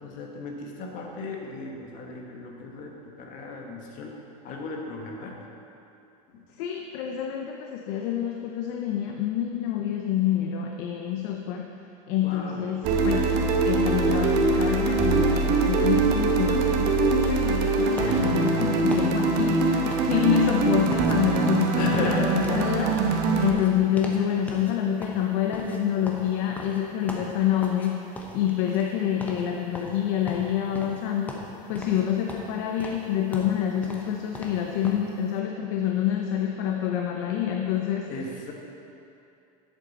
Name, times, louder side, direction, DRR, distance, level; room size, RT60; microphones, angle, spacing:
voice 1, 0.0-5.4 6.3-6.4 12.2-12.7 21.8-22.6 38.1-38.5, left 2 dB, 45° left, 0 dB, 1.6 m, -35 dB
voice 2, 6.6-11.7 12.1-13.4 13.6-38.1, left 10 dB, 60° left, 2 dB, 0.7 m, -27 dB
sound 1, 12.8-23.5, right 3 dB, 55° right, 1.1 m, -23 dB
sound 2, 18.0-21.1 21.4-21.7 21.9-24.2 24.5-24.7 25.0-27.9 28.1-28.9 29.2-29.4 29.7-31.0 31.3-32.0 32.3-35.1, left 1 dB, 10° left, 1.0 m, -39 dB
11.5 x 8.0 x 4.1 m, 2.7 s
supercardioid pair, 150°, 19 cm